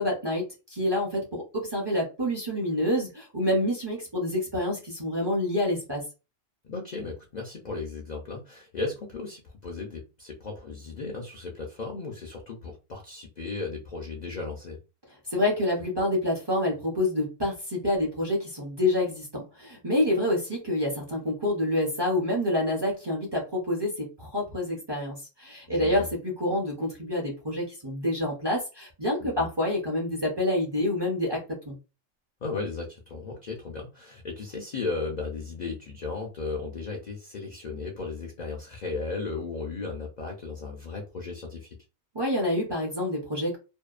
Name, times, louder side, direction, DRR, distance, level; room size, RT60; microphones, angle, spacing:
voice 1, 0.0-6.0 15.3-31.4 31.7-31.8 42.1-43.6, left 1 dB, 30° right, -3 dB, 0.5 m, -27 dB
voice 2, 6.7-14.8 25.7-26.1 29.3-29.5 32.4-41.8, left 3 dB, 60° left, 1 dB, 0.4 m, -35 dB
2.7 x 2.1 x 2.4 m, 0.30 s
omnidirectional pair, 1.4 m